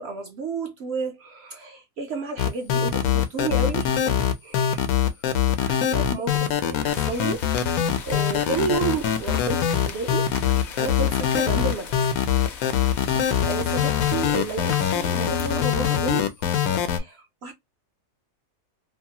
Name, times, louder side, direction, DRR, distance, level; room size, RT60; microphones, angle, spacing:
voice 1, 0.0-4.1 4.4-5.3 5.6-10.3 10.8-12.0 12.5-13.0 13.5-16.3 16.7-17.5, right 4 dB, 65° right, 0.7 m, -31 dB
sound 1, 2.4-17.0, left 9 dB, 90° left, 1.1 m, -23 dB
sound 2, 6.9-15.5, left 5 dB, 60° left, 0.8 m, -39 dB
2.8 x 2.3 x 2.7 m
omnidirectional pair, 1.5 m